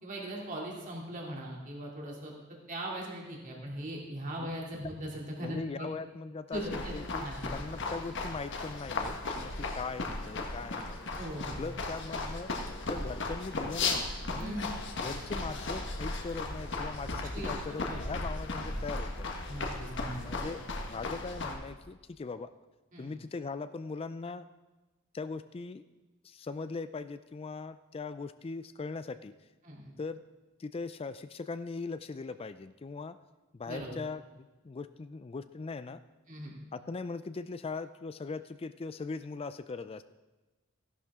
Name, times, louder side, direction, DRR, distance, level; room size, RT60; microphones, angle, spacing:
voice 1, 0.0-2.3 2.7-5.9 6.5-6.9 7.2-7.7 11.2-11.6 14.4-14.7 17.3-18.0 19.5-20.1 20.5-20.6 22.9-23.1 29.6-29.9 33.7-33.9 36.3-36.5, right 1 dB, 40° right, -2 dB, 2.6 m, -40 dB
voice 2, 4.4-4.9 5.4-11.0 11.6-12.5 12.9-14.6 15.0-19.3 20.2-22.5 23.0-24.5 25.1-25.8 26.2-29.3 30.0-30.2 30.6-33.2 33.5-36.0 36.7-40.0, left 4 dB, 25° left, 13 dB, 0.3 m, -40 dB
sound 1, 6.5-21.6, left 3 dB, 55° left, 1.4 m, -36 dB
15.0 x 11.5 x 3.6 m, 1.2 s
head